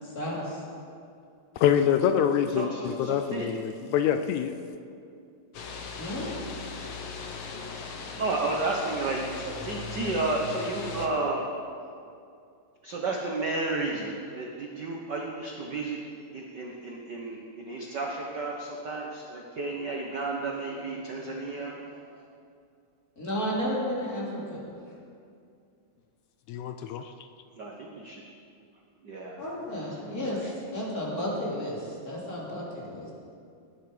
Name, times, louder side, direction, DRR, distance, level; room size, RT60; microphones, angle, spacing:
voice 1, 0.0-0.6 6.0-6.3 23.2-24.8 29.4-33.1, equal, 30° left, -5 dB, 3.2 m, -33 dB
voice 2, 1.6-4.6 26.5-27.1, left 9 dB, 80° left, 8 dB, 1.9 m, -25 dB
voice 3, 2.5-3.5 8.2-11.5 12.8-16.0 16.3-21.8 22.1-22.2 27.6-28.2 29.0-29.4 30.0-30.5, right 3 dB, 60° right, 0 dB, 1.1 m, -32 dB
sound 1, 5.5-11.1, left 4 dB, 55° left, 1.7 m, -38 dB
18.0 x 10.5 x 5.1 m, 2.4 s
omnidirectional pair, 3.4 m